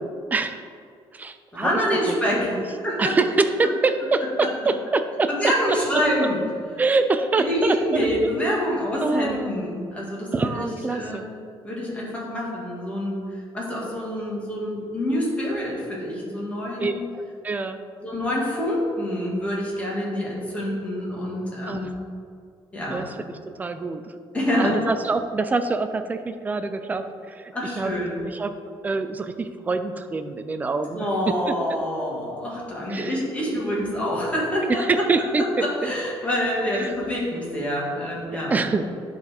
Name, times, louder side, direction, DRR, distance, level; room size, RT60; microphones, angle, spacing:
voice 1, 0.3-0.6 1.1-1.7 2.5-2.6 3.0-5.3 5.9-6.0 6.8-8.1 9.0-9.5 10.3-11.3 16.8-17.8 21.7-21.9 22.9-23.1 23.5-24.0 24.6-27.9 28.2-28.6 28.8-31.6 32.9-33.2 34.7-35.9 36.7-36.9 38.3-39.0, right 3 dB, 15° right, 9 dB, 0.4 m, -25 dB
voice 2, 1.5-3.1 5.3-6.4 7.4-11.3 11.6-17.0 18.0-22.0 22.7-23.0 24.3-24.8 27.5-28.2 30.9-34.8 35.6-38.6, equal, 15° left, -5 dB, 1.7 m, -26 dB
10.5 x 4.1 x 4.3 m, 2.2 s
cardioid pair, 160°, 9 cm